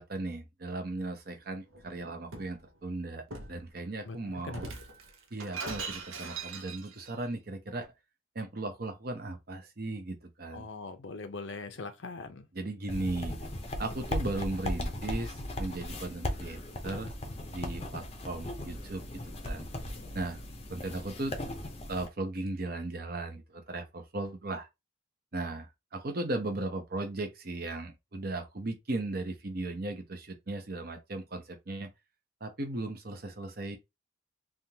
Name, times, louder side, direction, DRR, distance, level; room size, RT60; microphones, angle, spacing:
voice 1, 0.0-3.2 3.5-4.7 5.3-7.9 8.3-10.7 12.5-13.3 13.8-17.1 17.5-19.7 20.1-20.4 20.7-21.4 21.9-24.7 25.3-31.9 32.4-33.8, right 2 dB, 50° right, 0.8 m, -37 dB
Shatter, 1.7-2.6 3.3-3.6 4.5-7.1, right 4 dB, 90° right, 0.8 m, -41 dB
voice 2, 4.0-4.6 10.5-12.5, left 3 dB, 70° left, 0.7 m, -41 dB
sound 1, 12.9-22.1, left 1 dB, 30° left, 0.6 m, -37 dB
3.4 x 2.4 x 2.8 m
head